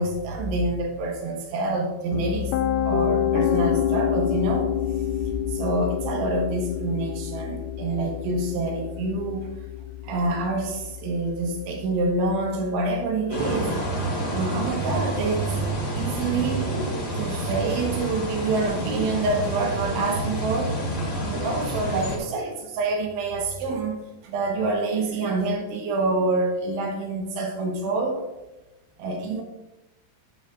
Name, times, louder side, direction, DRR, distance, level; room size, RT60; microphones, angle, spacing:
voice 1, 0.0-2.5 2.9-4.7 5.5-9.5 10.0-13.8 14.3-15.6 16.0-20.8 21.2-28.2 29.0-29.4, right 2 dB, 75° right, 1 dB, 3.6 m, -27 dB
Piano, 2.1-14.0, left 10 dB, 85° left, 3.2 m, -28 dB
sound 1, 13.3-22.2, right 1 dB, 70° left, 0.8 m, -28 dB
12.5 x 9.2 x 2.5 m, 1.0 s
omnidirectional pair, 5.6 m